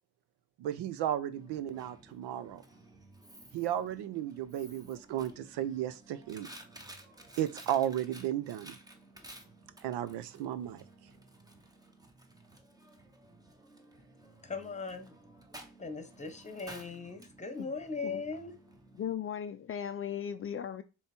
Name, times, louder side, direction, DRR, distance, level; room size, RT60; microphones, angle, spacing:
voice 1, 0.6-2.6 3.5-6.5 7.4-8.7 9.8-10.8, right 11 dB, 85° right, 0.7 m, -34 dB
Coin (dropping), 1.3-19.1, right 1 dB, 10° right, 0.8 m, -54 dB
voice 2, 14.4-15.1 15.8-18.5, left 4 dB, 15° left, 1.1 m, -39 dB
voice 3, 19.0-20.8, left 8 dB, 35° left, 0.4 m, -37 dB
6.7 x 3.2 x 4.4 m
cardioid pair, 115°, 40 cm